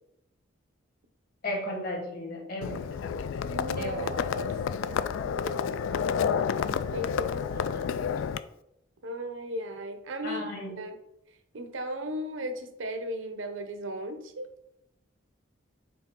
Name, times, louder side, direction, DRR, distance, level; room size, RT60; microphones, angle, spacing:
voice 1, 1.4-3.2 3.8-4.1 7.7-7.8 10.2-10.8, left 1 dB, 50° left, 1 dB, 1.6 m, -35 dB
Livestock farm animals working animals, 2.6-8.4, left 7 dB, 75° left, 0.3 m, -30 dB
voice 2, 3.4-4.6 4.9-6.1 6.9-7.8 9.0-10.5 10.8-10.9 11.5-14.5, equal, 80° right, 7 dB, 0.8 m, -37 dB
6.0 x 4.4 x 3.8 m, 0.83 s
head